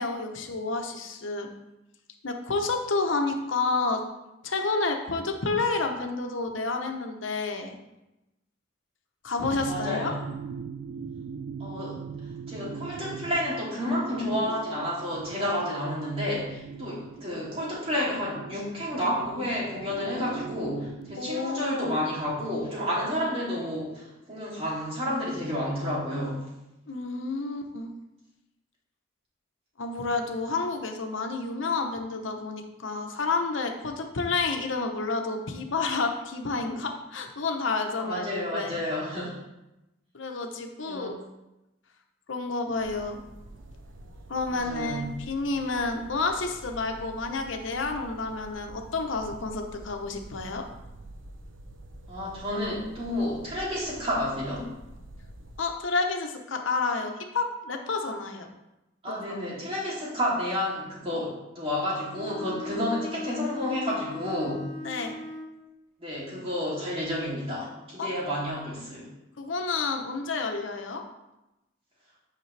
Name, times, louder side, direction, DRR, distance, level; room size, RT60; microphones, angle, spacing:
voice 1, 0.0-1.5 2.2-4.0 4.4-7.8 9.2-10.1 21.2-21.9 26.9-27.9 29.8-38.8 40.1-41.2 42.3-43.2 44.3-50.6 55.6-58.5 59.1-59.2 64.8-65.2 68.0-68.1 69.4-71.0, left 3 dB, 85° left, 4 dB, 0.9 m, -30 dB
sound 1, 9.4-21.2, right 6 dB, 60° right, 0.3 m, -40 dB
voice 2, 9.5-10.1 11.6-12.0 12.5-26.4 38.0-39.3 40.9-41.1 44.5-45.1 52.1-54.7 59.0-64.6 66.0-69.1, left 1 dB, 30° right, -7 dB, 2.9 m, -30 dB
sound 2, 42.8-55.6, right 1 dB, 80° right, 0.7 m, -47 dB
Bowed string instrument, 61.6-65.6, left 3 dB, 20° left, 2.2 m, -39 dB
9.1 x 5.9 x 3.3 m, 0.96 s
head